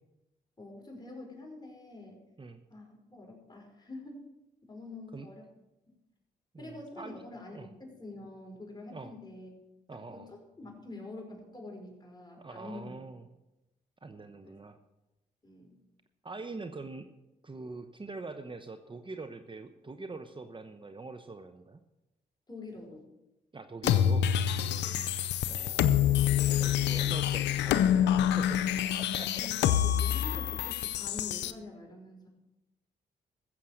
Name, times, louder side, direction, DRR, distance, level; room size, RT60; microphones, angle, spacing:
voice 1, 0.6-2.2 2.7-4.3 4.6-5.5 6.6-9.5 9.9-13.0 14.4-14.6 15.4-15.8 22.5-23.1 24.8-25.1 29.2-32.3, left 2 dB, 25° left, 0 dB, 5.3 m, -46 dB
voice 2, 6.5-7.2 7.5-7.7 8.9-9.1 9.9-10.3 12.4-13.3 14.0-14.8 16.2-17.1 17.4-21.8 23.5-24.3 25.5-26.1 26.5-28.6 28.9-29.5, right 3 dB, 30° right, 8 dB, 1.0 m, -43 dB
sound 1, 23.8-31.5, left 10 dB, 90° left, 0.6 m, -27 dB
14.5 x 7.5 x 6.4 m, 0.97 s
supercardioid pair, 50°, 18 cm